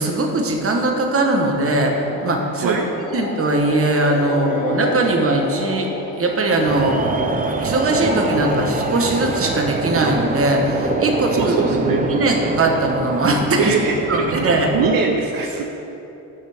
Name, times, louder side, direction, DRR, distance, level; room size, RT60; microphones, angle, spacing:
voice 1, 0.0-2.8 3.1-13.7 14.1-14.8, right 2 dB, 40° right, 2 dB, 1.2 m, -20 dB
sound 1, 1.8-11.7, left 3 dB, 25° left, 0.6 m, -30 dB
voice 2, 2.6-2.9 11.4-12.0 13.6-15.7, right 5 dB, 70° right, 2 dB, 0.8 m, -22 dB
sound 2, 6.7-15.1, right 4 dB, 25° right, 0.5 m, -25 dB
12.5 x 7.5 x 3.6 m, 3.0 s
wide cardioid pair, 135°, 35 cm